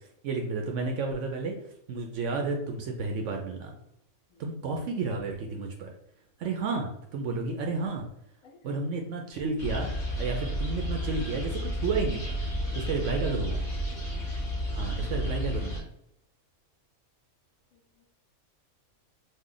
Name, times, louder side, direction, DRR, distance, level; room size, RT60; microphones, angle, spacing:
voice 1, 0.0-1.6 1.9-3.8 4.4-5.9 6.4-8.1 8.6-9.9 10.2-12.3 12.7-13.6 14.7-15.9, right 3 dB, 65° right, 2 dB, 0.8 m, -31 dB
sound 1, 9.6-15.8, equal, 35° left, 1.0 m, -31 dB
voice 2, 12.4-13.8 17.7-18.0, left 2 dB, 70° left, 3 dB, 1.0 m, -49 dB
3.2 x 2.1 x 3.8 m, 0.78 s
omnidirectional pair, 1.5 m